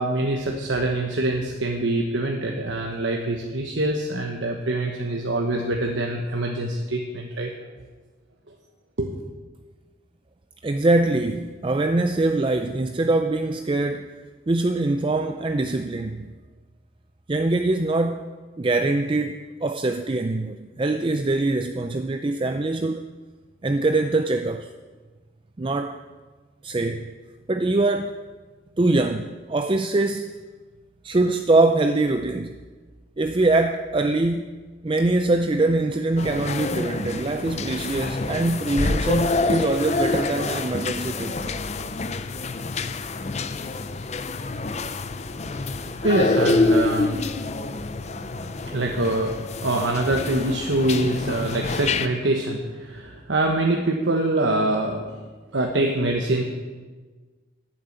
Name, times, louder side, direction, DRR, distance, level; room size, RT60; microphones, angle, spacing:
voice 1, 0.0-7.5 9.0-9.1 46.0-47.2 48.7-49.4 49.6-55.1 55.5-56.4, right 2 dB, 80° right, 1.2 m, -24 dB
voice 2, 10.6-14.2 14.5-16.3 17.3-18.3 18.6-23.1 23.6-24.7 25.6-26.0 26.6-27.1 27.5-28.2 28.8-30.5 31.0-32.6 33.2-34.5 34.8-41.6, right 2 dB, 25° right, 0.4 m, -23 dB
sound 1, 36.2-52.1, left 3 dB, 35° left, 0.5 m, -27 dB
11.0 x 9.2 x 7.9 m
head